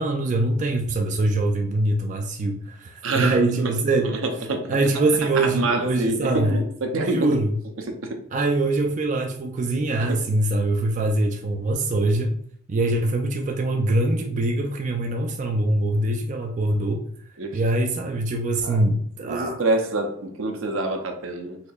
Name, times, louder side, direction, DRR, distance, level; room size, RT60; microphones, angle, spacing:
voice 1, 0.0-4.1 4.7-6.7 6.9-7.5 8.3-12.3 12.7-17.0 17.5-19.6, right 2 dB, 35° right, 0.3 m, -23 dB
voice 2, 3.0-3.4 3.6-3.7 4.0-4.8 5.4-7.4 7.9-8.2 10.0-10.3 17.4-17.6 18.6-18.8 19.2-21.6, right 2 dB, 80° right, 0.6 m, -26 dB
4.3 x 2.8 x 2.3 m
head